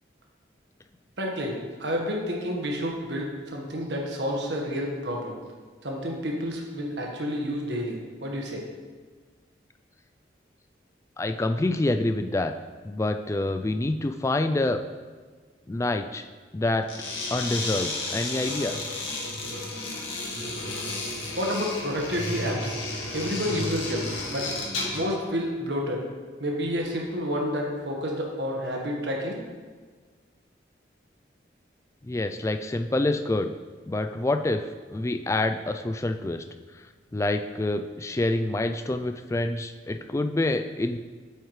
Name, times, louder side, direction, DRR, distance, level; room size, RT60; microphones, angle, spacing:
voice 1, 1.2-5.4 5.8-8.6 21.3-22.8 23.1-24.5 24.9-26.0 26.4-29.4, equal, 65° right, 0 dB, 1.4 m, -30 dB
voice 2, 11.2-12.5 12.8-14.8 15.7-16.2 16.5-16.9 17.3-18.9 32.1-33.5 33.9-34.7 34.9-36.4 37.1-41.0, left 2 dB, 15° left, 8 dB, 0.3 m, -27 dB
sound 1, 16.8-25.1, left 2 dB, 90° left, 2.0 m, -32 dB
8.2 x 8.0 x 3.2 m, 1.5 s
head